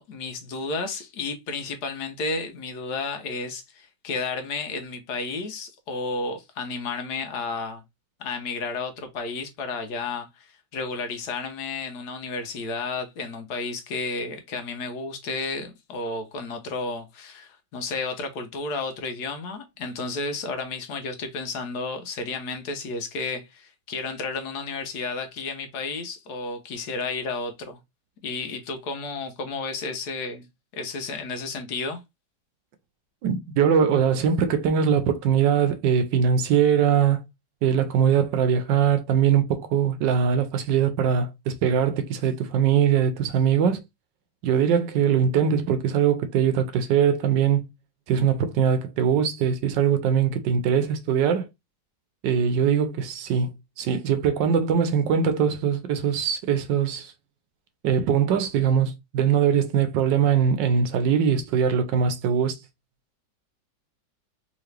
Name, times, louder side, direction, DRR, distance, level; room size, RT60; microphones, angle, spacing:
voice 1, 0.0-7.8 8.2-27.8 28.2-30.5 30.7-32.0, left 3 dB, 65° left, 1.3 m, -32 dB
voice 2, 33.2-37.2 37.6-43.8 44.4-47.7 48.1-51.5 52.2-57.1 57.8-62.5, right 7 dB, 80° right, 1.4 m, -22 dB
3.8 x 3.1 x 3.2 m
omnidirectional pair, 1.9 m